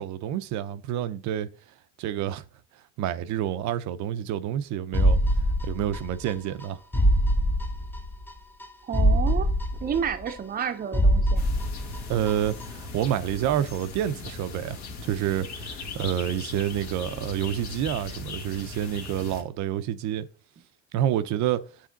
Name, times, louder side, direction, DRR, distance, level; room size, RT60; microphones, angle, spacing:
voice 1, 0.0-1.5 2.0-2.4 3.0-5.2 5.6-6.8 12.1-20.3 20.9-21.6, right 11 dB, 60° right, 0.6 m, -28 dB
sound 1, 4.9-6.3 6.6-6.7 6.9-8.3 8.6-8.7 8.9-10.6 10.9-12.3 12.6-12.7, equal, 5° left, 0.6 m, -23 dB
voice 2, 8.8-9.5 9.8-11.4, right 7 dB, 30° right, 0.7 m, -30 dB
sound 2, 11.4-19.4, left 3 dB, 60° left, 1.7 m, -38 dB
7.6 x 3.4 x 4.0 m
cardioid pair, 115°, 32 cm